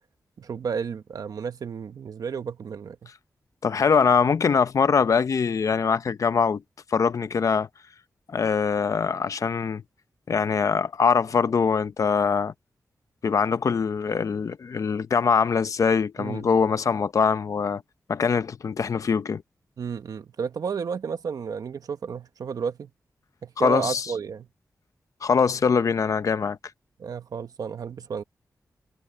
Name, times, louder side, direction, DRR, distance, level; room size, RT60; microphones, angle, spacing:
voice 1, 0.4-3.1 16.2-16.5 19.8-22.9 23.4-24.5 27.0-28.2, right 6 dB, 75° right, 1.1 m, -32 dB
voice 2, 3.6-6.6 6.9-7.7 8.3-9.8 10.3-12.5 13.2-17.8 18.1-19.4 23.6-24.0 25.2-26.6, left 6 dB, 60° left, 0.8 m, -23 dB
wide cardioid pair, 120°, 6 cm